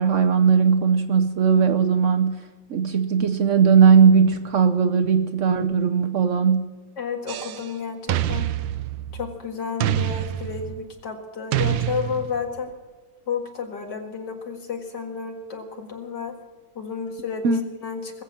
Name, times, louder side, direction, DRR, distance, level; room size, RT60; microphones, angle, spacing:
voice 1, 0.0-2.4 2.7-6.7 17.4-17.6, right 6 dB, 60° right, 0.8 m, -18 dB
voice 2, 7.0-8.5 9.1-12.7 13.3-16.3 16.8-17.5 17.7-18.2, left 6 dB, 60° left, 2.5 m, -31 dB
sound 1, 7.3-7.7 8.1-9.4 9.8-10.9 11.5-12.6, right 13 dB, 80° right, 1.4 m, -26 dB
20.0 x 8.4 x 7.4 m
omnidirectional pair, 2.1 m